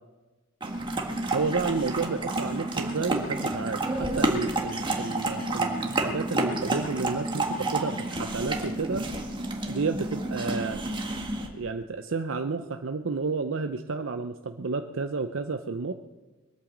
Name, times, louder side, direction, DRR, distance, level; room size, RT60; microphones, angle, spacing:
sound 1, 0.6-11.5, right 2 dB, 25° right, 1.7 m, -30 dB
voice 1, 1.3-9.1 9.7-10.9 11.4-15.9, right 4 dB, 65° right, 7 dB, 0.7 m, -31 dB
22.0 x 8.8 x 7.3 m, 1.2 s
head